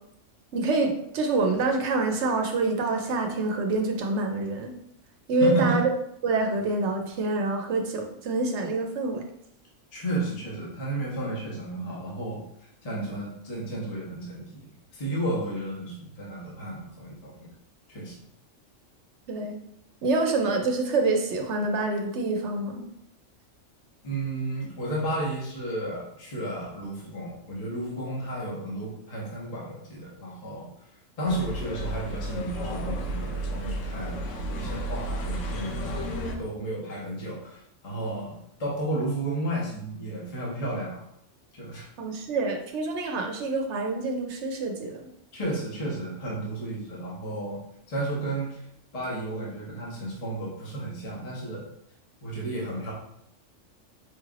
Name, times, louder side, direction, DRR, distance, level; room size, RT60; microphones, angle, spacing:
voice 1, 0.5-4.7 5.3-5.9 6.2-9.2 19.3-19.6 20.0-22.8 42.0-45.1, right 3 dB, 70° right, 3 dB, 0.9 m, -26 dB
voice 2, 5.4-5.8 9.9-12.4 12.8-14.7 14.9-17.5 17.9-18.1 24.0-30.7 31.2-34.2 34.5-41.0 41.5-41.9 45.3-47.6 47.9-48.6 48.9-51.7 52.2-52.9, right 1 dB, 30° left, -5 dB, 1.0 m, -32 dB
sound 1, 31.2-36.3, right 1 dB, 80° left, 1.0 m, -32 dB
4.8 x 3.2 x 2.4 m, 0.73 s
omnidirectional pair, 1.3 m